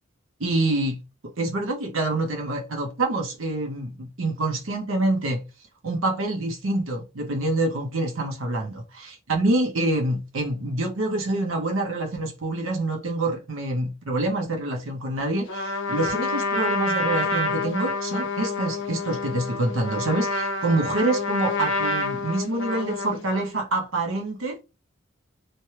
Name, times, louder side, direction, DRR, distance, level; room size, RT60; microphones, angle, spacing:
voice 1, 0.4-1.0 1.2-5.4 5.8-24.6, right 2 dB, 80° right, 0.7 m, -26 dB
Trumpet, 15.5-23.6, left 2 dB, 65° left, 0.8 m, -28 dB
3.2 x 2.2 x 2.8 m
head